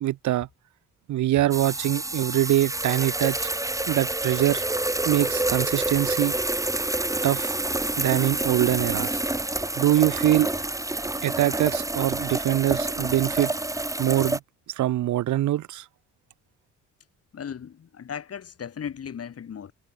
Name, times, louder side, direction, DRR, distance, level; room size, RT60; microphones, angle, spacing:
voice 1, 0.0-0.5 1.1-3.5 3.9-4.6 5.0-6.3 7.2-7.5 8.0-9.2 9.8-10.5 11.2-13.5 14.0-14.4 14.7-15.8, right 14 dB, 70° right, 1.0 m, -23 dB
sound 1, 1.5-14.4, right 2 dB, 10° right, 2.0 m, -28 dB
voice 2, 17.3-19.7, left 8 dB, 50° left, 4.9 m, -36 dB
cardioid pair, 90°, 30 cm